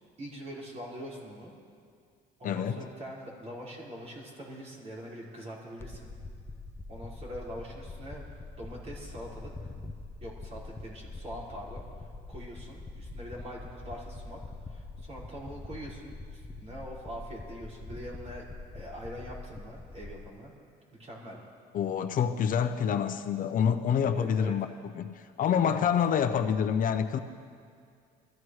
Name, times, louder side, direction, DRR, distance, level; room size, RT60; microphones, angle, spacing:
voice 1, 0.2-1.5 2.4-6.1 6.9-9.5 10.2-11.8 12.3-14.4 14.6-18.4 18.7-20.5 21.0-21.4 24.1-24.5 25.6-25.7, equal, 40° right, -5 dB, 4.9 m, -43 dB
voice 2, 2.4-2.9 21.7-24.7 24.9-27.2, left 8 dB, 55° left, 9 dB, 0.7 m, -27 dB
sound 1, 5.8-20.3, left 2 dB, 15° left, 0.6 m, -44 dB
24.0 x 14.5 x 3.2 m, 2.3 s
cardioid pair, 110°, 17 cm